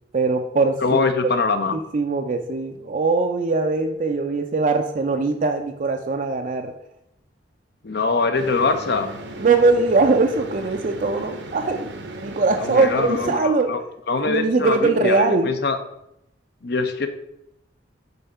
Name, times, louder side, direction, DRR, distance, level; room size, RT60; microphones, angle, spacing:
voice 1, 0.1-1.0 1.2-1.3 1.7-6.7 9.4-11.9 12.2-13.7 14.2-15.5, right 3 dB, 45° right, 4 dB, 0.4 m, -21 dB
voice 2, 0.8-1.7 7.8-9.1 12.6-13.8 14.1-15.8 16.6-17.1, left 4 dB, 60° left, 8 dB, 0.7 m, -23 dB
sound 1, 8.4-13.4, right 1 dB, 65° right, 0.8 m, -36 dB
5.5 x 3.9 x 5.5 m, 0.80 s
head